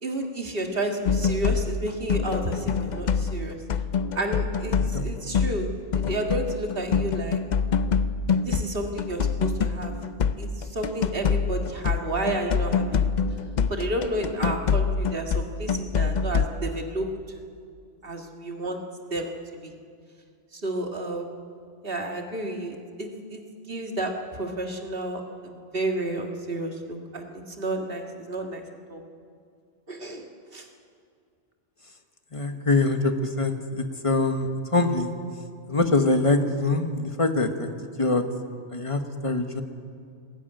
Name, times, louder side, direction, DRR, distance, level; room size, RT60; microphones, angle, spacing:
voice 1, 0.0-3.6 4.2-7.4 8.4-9.9 10.4-13.1 13.7-17.1 18.0-18.8 19.1-19.3 19.6-19.7 20.5-21.3 21.8-23.4 23.7-24.1 24.4-28.6 28.9-29.0 29.9-30.2 30.5-30.6, right 1 dB, 50° right, 2 dB, 2.0 m, -31 dB
sound 1, 1.0-8.7 9.0-16.5, left 6 dB, 50° left, 0.6 m, -26 dB
voice 2, 4.7-5.1 32.3-35.2 35.7-37.7 38.0-38.2 38.7-39.6, left 2 dB, 30° left, 6 dB, 1.3 m, -24 dB
20.0 x 14.5 x 9.1 m, 2.3 s
omnidirectional pair, 1.2 m